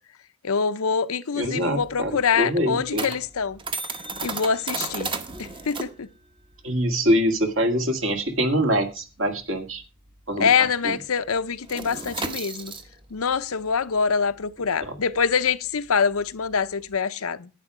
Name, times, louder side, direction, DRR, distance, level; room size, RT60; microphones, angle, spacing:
voice 1, 0.4-3.6 4.2-5.1 5.4-6.1 10.4-12.7 13.1-17.5, left 6 dB, 75° left, 0.7 m, -25 dB
sound 1, 1.4-10.4 10.7-10.9 11.2-17.0, right 3 dB, 20° right, 0.9 m, -35 dB
voice 2, 1.4-3.1 6.6-9.8 10.3-11.0 14.8-15.0, equal, 60° right, 2.0 m, -24 dB
11.0 x 9.5 x 4.9 m
head